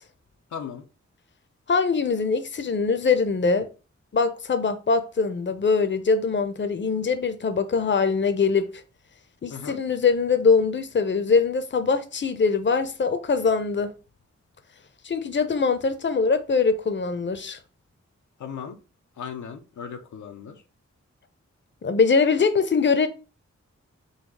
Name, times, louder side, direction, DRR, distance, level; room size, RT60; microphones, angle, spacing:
voice 1, 0.5-0.9 9.5-9.8 18.4-18.8 19.2-20.6, left 7 dB, 85° left, 0.7 m, -37 dB
voice 2, 1.7-3.7 4.1-8.7 9.4-13.9 15.0-17.6 21.8-23.1, left 5 dB, 40° left, 0.7 m, -22 dB
4.0 x 2.3 x 4.6 m
cardioid pair, 50°, 29 cm